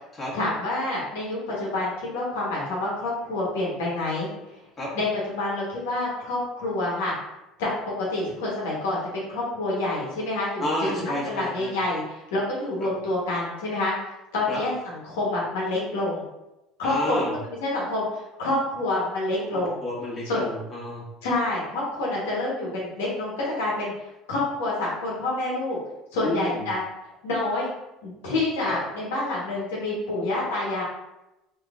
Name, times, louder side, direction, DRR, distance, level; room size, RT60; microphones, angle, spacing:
voice 1, 0.3-4.3 4.9-7.1 7.6-13.9 14.3-16.2 16.8-19.8 20.2-20.4 21.2-23.9 24.3-25.8 26.1-26.8 27.2-27.7 28.0-30.8, left 2 dB, 90° left, -5 dB, 1.1 m, -27 dB
voice 2, 10.6-11.7 12.8-12.9 14.5-14.6 16.8-17.3 19.8-21.0 26.2-26.5 28.6-28.7, left 1 dB, 30° left, -5 dB, 1.5 m, -30 dB
3.4 x 2.9 x 2.4 m, 0.94 s
supercardioid pair, 90°, 0 cm